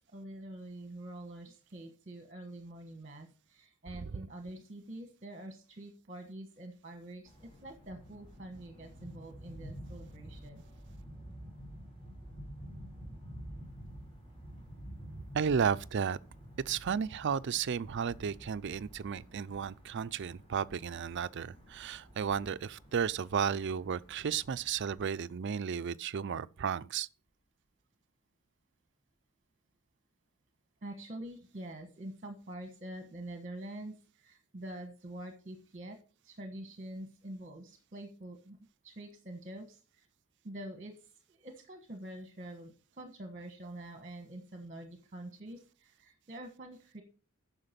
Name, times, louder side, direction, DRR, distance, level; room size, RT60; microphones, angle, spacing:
voice 1, 0.1-10.6 30.8-36.0 36.2-40.1 40.4-40.9 41.3-47.0, right 1 dB, 35° right, 1.3 m, -46 dB
sound 1, 7.2-25.1, equal, 25° left, 3.0 m, -50 dB
voice 2, 15.3-16.2 16.7-27.1, right 7 dB, 55° right, 0.4 m, -33 dB
9.8 x 6.4 x 5.2 m
head